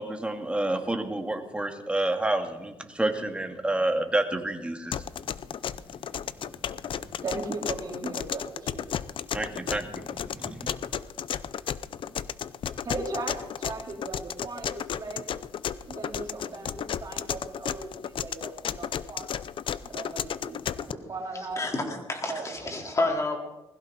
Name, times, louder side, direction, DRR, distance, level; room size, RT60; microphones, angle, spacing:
voice 1, 0.0-5.0 9.3-10.7, right 1 dB, 10° right, 5 dB, 2.1 m, -29 dB
sound 1, 4.9-20.9, left 9 dB, 60° left, 0.6 m, -33 dB
voice 2, 7.2-9.0 11.9-12.2 12.8-15.3 15.8-19.3 19.8-21.6 22.3-23.1, right 3 dB, 40° right, 0 dB, 4.0 m, -37 dB
voice 3, 21.6-23.4, left 2 dB, 30° left, 1 dB, 4.1 m, -29 dB
20.0 x 15.5 x 4.2 m, 1.0 s
cardioid pair, 90°, 10 cm